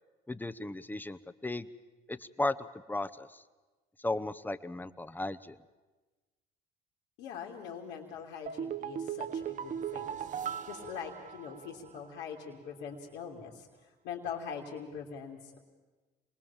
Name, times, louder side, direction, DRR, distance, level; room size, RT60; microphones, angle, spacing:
voice 1, 0.3-1.7 2.1-3.4 4.0-5.6, left 2 dB, 10° left, 13 dB, 0.9 m, -35 dB
voice 2, 7.2-10.2 10.6-13.7 14.0-15.6, left 7 dB, 80° left, -3 dB, 3.0 m, -42 dB
sound 1, 8.5-11.9 12.2-12.3, right 8 dB, 45° right, 1.0 m, -38 dB
27.0 x 20.0 x 7.3 m, 1.3 s
supercardioid pair, 95°, 18 cm